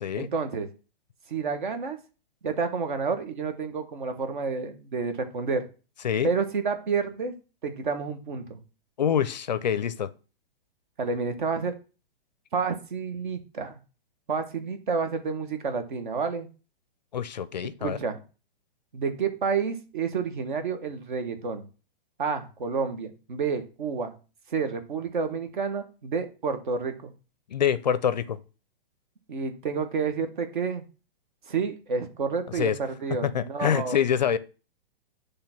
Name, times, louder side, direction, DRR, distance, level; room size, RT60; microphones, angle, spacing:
voice 1, 0.1-0.7 1.3-2.0 2.4-5.6 6.2-7.3 7.6-8.6 11.0-11.7 12.5-13.8 14.3-16.5 17.8-18.2 18.9-21.7 22.2-24.1 24.5-27.1 29.3-30.8 31.5-34.0, right 5 dB, 55° right, 1.3 m, -29 dB
voice 2, 9.0-10.1 17.1-18.0 27.5-28.4 32.6-32.8 33.2-34.4, left 8 dB, 50° left, 0.5 m, -25 dB
8.6 x 3.4 x 5.8 m
hypercardioid pair, 180°, 29 cm